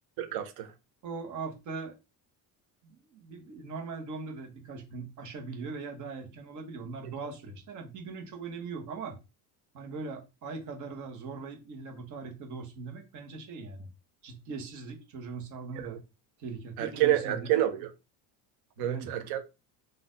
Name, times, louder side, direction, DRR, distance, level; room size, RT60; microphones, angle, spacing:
voice 1, 0.2-0.7 15.7-16.0 16.8-17.9 18.8-19.4, right 13 dB, 70° right, 0.8 m, -28 dB
voice 2, 1.0-1.9 2.8-9.2 9.7-13.9 14.2-16.0 16.4-17.5 18.8-19.1, right 4 dB, 50° right, 1.1 m, -40 dB
4.2 x 2.6 x 3.8 m
cardioid pair, 180°, 40 cm